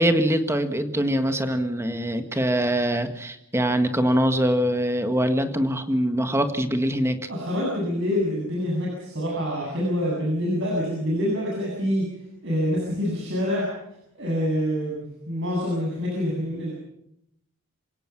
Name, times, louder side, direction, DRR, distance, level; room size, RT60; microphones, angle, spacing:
voice 1, 0.0-7.2, equal, 10° right, 8 dB, 1.7 m, -23 dB
voice 2, 7.3-12.1 12.4-13.7 14.2-16.7, equal, 55° right, -3 dB, 8.0 m, -26 dB
27.5 x 17.5 x 6.1 m, 0.77 s
head